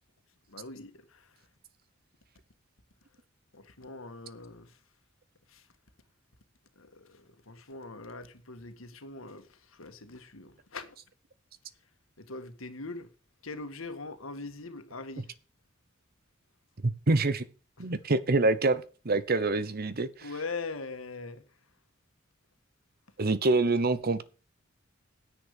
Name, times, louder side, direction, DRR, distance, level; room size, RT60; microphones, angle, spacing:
voice 1, 0.5-1.3 3.5-4.8 5.5-5.7 6.8-11.0 12.2-13.1 13.4-15.3 17.8-17.9 20.2-21.5, left 3 dB, 80° left, 1.8 m, -42 dB
voice 2, 16.8-17.5 17.8-20.1 23.2-24.2, right 2 dB, 50° right, 0.9 m, -26 dB
10.0 x 7.7 x 6.7 m
head